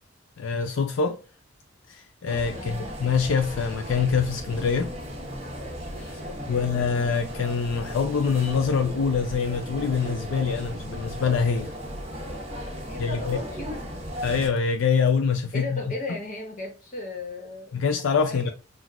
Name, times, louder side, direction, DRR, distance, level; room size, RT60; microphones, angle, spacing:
voice 1, 0.4-1.2 1.9-4.9 6.0-11.7 13.0-13.4 14.2-15.8 17.7-18.5, left 5 dB, 75° left, 0.4 m, -25 dB
sound 1, 2.3-14.5, equal, 30° right, 1.1 m, -36 dB
voice 2, 2.5-2.9 6.2-6.7 12.9-13.8 15.5-17.9 18.3-18.5, left 2 dB, 40° left, 1.2 m, -36 dB
5.8 x 2.4 x 2.4 m
head